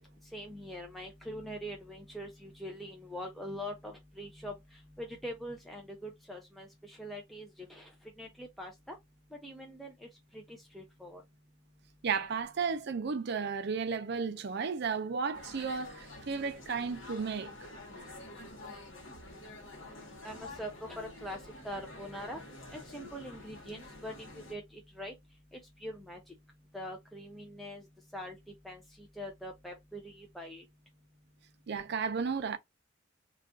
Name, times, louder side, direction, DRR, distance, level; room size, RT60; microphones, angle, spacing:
voice 1, 0.3-4.5 5.0-7.9 8.2-8.9 9.4-9.9 10.3-11.2 19.9-20.7 21.0-21.4 21.6-22.4 22.7-24.6 25.0-25.1 25.8-26.2 26.7-27.8 28.1-28.4 28.6-28.8 29.2-30.6, equal, ahead, 0.4 m, -43 dB
voice 2, 12.0-17.5 31.7-32.6, right 5 dB, 55° right, 0.5 m, -33 dB
sound 1, 15.3-24.5, left 2 dB, 70° left, 1.1 m, -48 dB
2.4 x 2.3 x 3.6 m
head